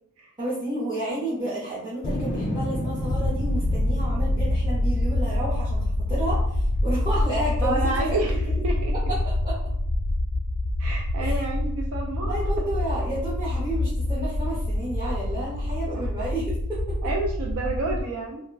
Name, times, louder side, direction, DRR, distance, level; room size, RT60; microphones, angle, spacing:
voice 1, 0.4-5.8 6.1-8.4 9.1-9.6 11.2-11.4 12.2-17.0, right 1 dB, 20° right, -9 dB, 0.6 m, -31 dB
sound 1, 2.0-7.2 7.8-8.6, left 1 dB, 30° left, 0.4 m, -33 dB
sound 2, 3.1-18.0, left 1 dB, 85° left, 0.6 m, -26 dB
voice 2, 7.6-8.9 10.8-12.4 15.9-16.0 17.0-18.4, right 2 dB, 70° right, 0 dB, 0.4 m, -30 dB
2.3 x 2.1 x 3.3 m, 0.72 s
head